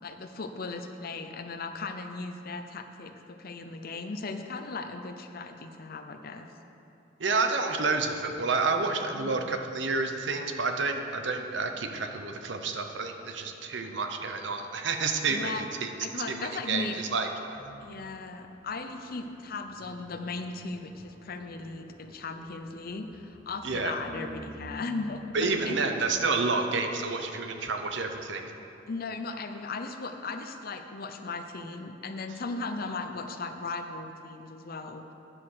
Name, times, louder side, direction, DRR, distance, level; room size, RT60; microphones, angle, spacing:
voice 1, 0.0-6.5 9.2-9.5 13.8-14.1 15.3-15.6 16.0-17.0 17.8-25.8 28.9-35.1, left 3 dB, 50° left, 7 dB, 0.6 m, -37 dB
voice 2, 7.2-15.9 16.3-17.3 23.6-23.9 25.3-28.5, right 4 dB, 70° right, 5 dB, 0.8 m, -29 dB
sound 1, 17.5-25.8, equal, 30° right, 2.3 m, -48 dB
9.7 x 5.9 x 6.5 m, 2.8 s
head